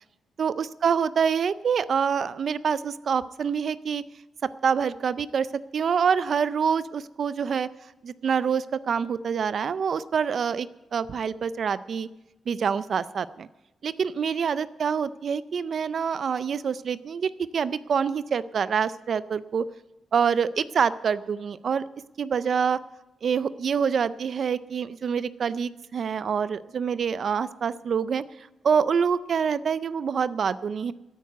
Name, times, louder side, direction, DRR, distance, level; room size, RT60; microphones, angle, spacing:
voice 1, 0.4-4.0 4.6-7.7 8.0-12.1 12.5-13.5 13.8-19.7 20.1-21.8 22.2-22.8 23.2-30.9, right 6 dB, 55° right, 16 dB, 0.4 m, -26 dB
13.0 x 9.3 x 8.0 m, 1.0 s
wide cardioid pair, 140°, 0 cm